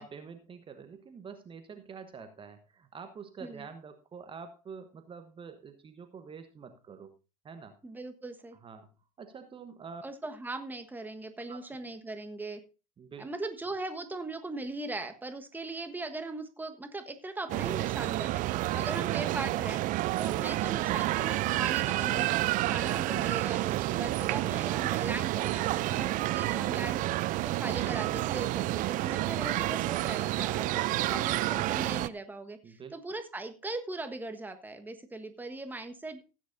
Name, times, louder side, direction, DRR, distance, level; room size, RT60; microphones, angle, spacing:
voice 1, 0.0-7.1 7.4-7.7 8.6-8.9 9.2-10.0 11.5-11.8 13.0-13.3 18.9-19.0 32.6-33.0, right 6 dB, 30° right, 8 dB, 1.2 m, -46 dB
voice 2, 7.8-8.6 10.0-12.6 13.2-19.8 20.2-22.3 22.6-36.2, right 2 dB, 10° right, 7 dB, 1.4 m, -39 dB
sound 1, 17.5-32.1, right 17 dB, 45° right, 0.5 m, -29 dB
16.0 x 9.4 x 2.7 m, 0.31 s
hypercardioid pair, 80°, 19 cm